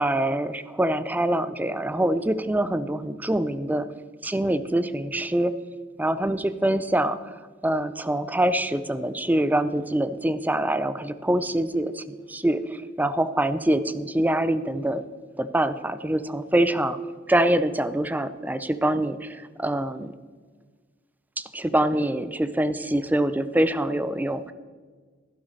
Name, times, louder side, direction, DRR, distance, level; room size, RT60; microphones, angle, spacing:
voice 1, 0.0-3.9 4.2-5.5 6.0-15.0 15.4-17.0 17.3-20.1 21.4-24.5, right 1 dB, 10° right, 13 dB, 0.4 m, -25 dB
12.0 x 11.5 x 4.1 m, 1.5 s
head